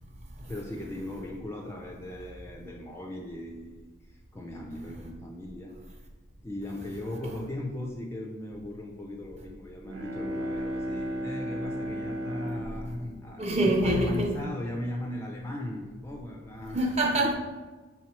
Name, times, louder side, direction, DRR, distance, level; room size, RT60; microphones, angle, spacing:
voice 1, 0.4-5.7 6.4-16.9 17.2-17.3, left 1 dB, 15° left, 0.3 m, -38 dB
Bowed string instrument, 9.7-14.4, equal, 85° right, 0.6 m, -35 dB
voice 2, 13.4-14.3 16.7-17.3, right 1 dB, 35° right, 0.6 m, -25 dB
3.7 x 2.9 x 4.3 m
head